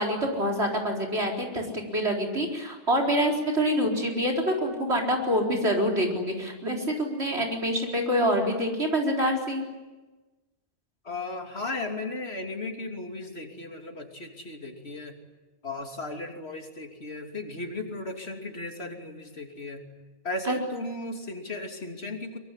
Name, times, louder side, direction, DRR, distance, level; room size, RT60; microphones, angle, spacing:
voice 1, 0.0-9.6 20.5-20.6, equal, 90° right, 1 dB, 4.7 m, -26 dB
voice 2, 11.0-15.2 15.6-19.8 20.2-22.4, left 2 dB, 75° left, 3 dB, 3.3 m, -35 dB
24.0 x 23.0 x 10.0 m, 1.2 s
omnidirectional pair, 1.1 m